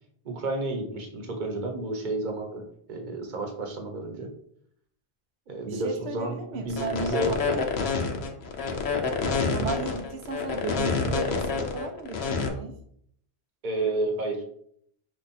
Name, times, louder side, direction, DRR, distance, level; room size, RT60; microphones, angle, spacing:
voice 1, 0.2-4.3 5.5-7.6 13.6-14.4, right 2 dB, 50° right, 3 dB, 1.0 m, -31 dB
voice 2, 5.7-7.0 7.5-7.6 9.5-12.7, right 4 dB, 90° right, 5 dB, 0.9 m, -35 dB
sound 1, 6.7-12.5, left 5 dB, 85° left, 1.0 m, -27 dB
5.5 x 2.4 x 4.1 m, 0.68 s
omnidirectional pair, 1.0 m